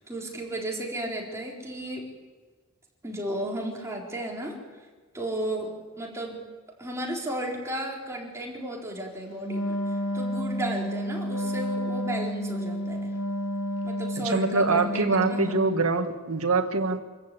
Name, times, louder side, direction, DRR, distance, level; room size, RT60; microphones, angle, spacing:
voice 1, 0.0-2.0 3.0-4.6 5.1-5.7 6.0-6.4 6.8-9.8 10.1-13.1 13.8-15.6, right 1 dB, 15° right, -2 dB, 4.1 m, -34 dB
Wind instrument woodwind instrument, 9.4-15.9, equal, 75° left, 2.0 m, -30 dB
voice 2, 14.2-17.0, right 3 dB, 75° right, 6 dB, 1.8 m, -24 dB
27.0 x 14.0 x 8.6 m, 1.4 s
head